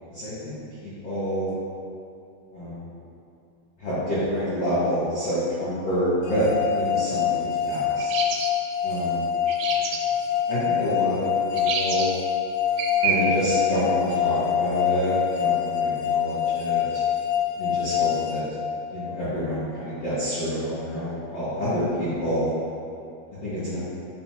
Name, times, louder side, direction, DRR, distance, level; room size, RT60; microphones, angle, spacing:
voice 1, 0.1-0.5 0.8-1.5 2.5-2.9 3.8-6.5 6.7-8.1 8.8-9.3 9.7-9.8 10.5-12.1 13.0-17.0 17.6-18.4 18.9-22.5 23.4-23.8, equal, 55° left, -13 dB, 1.8 m, -27 dB
sound 1, 6.3-19.2, left 9 dB, 80° left, 2.8 m, -25 dB
sound 2, 8.0-8.5 9.5-10.0 11.6-12.1 12.8-13.2, right 7 dB, 85° right, 3.1 m, -27 dB
7.5 x 6.7 x 2.9 m, 2.5 s
omnidirectional pair, 5.5 m